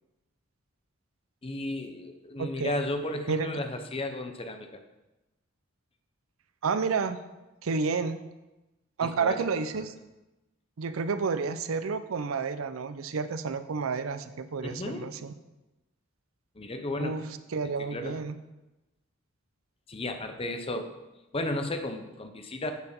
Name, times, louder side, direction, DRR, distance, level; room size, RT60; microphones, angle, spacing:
voice 1, 1.4-4.7 9.0-9.4 9.7-9.9 14.6-15.1 16.6-17.2 17.8-18.2 19.9-21.0 21.3-22.7, left 2 dB, 25° left, 6 dB, 0.7 m, -34 dB
voice 2, 2.4-2.8 3.3-3.5 6.6-7.2 7.6-8.2 9.0-9.9 10.8-15.3 17.0-17.2 17.5-18.4, right 5 dB, 80° right, 11 dB, 0.5 m, -30 dB
8.1 x 4.7 x 5.3 m, 1.0 s
head